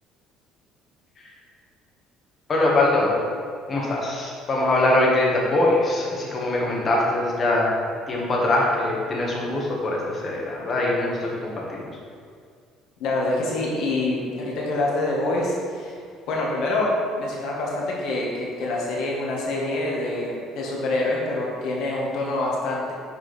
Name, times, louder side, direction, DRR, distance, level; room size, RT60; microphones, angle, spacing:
voice 1, 2.5-3.2 3.7-7.7 8.1-11.8, left 2 dB, 35° left, -3 dB, 1.6 m, -22 dB
voice 2, 13.0-15.9 16.3-22.9, left 2 dB, 70° left, -3 dB, 1.6 m, -26 dB
6.4 x 4.7 x 3.4 m, 2.1 s
supercardioid pair, 95°, 0 cm